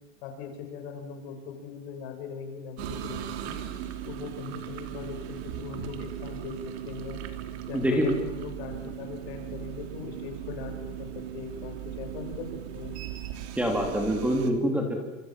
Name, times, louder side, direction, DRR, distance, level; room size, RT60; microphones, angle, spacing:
voice 1, 0.2-3.6 4.1-6.6 6.9-7.2 7.7-12.5 12.7-13.0, left 6 dB, 55° left, 4 dB, 7.0 m, -40 dB
sound 1, 2.8-14.5, right 10 dB, 55° right, 3.1 m, -38 dB
voice 2, 7.7-8.1 13.6-15.0, equal, 5° right, 3 dB, 3.0 m, -25 dB
27.0 x 26.0 x 7.4 m, 1.1 s
supercardioid pair, 155°, 39 cm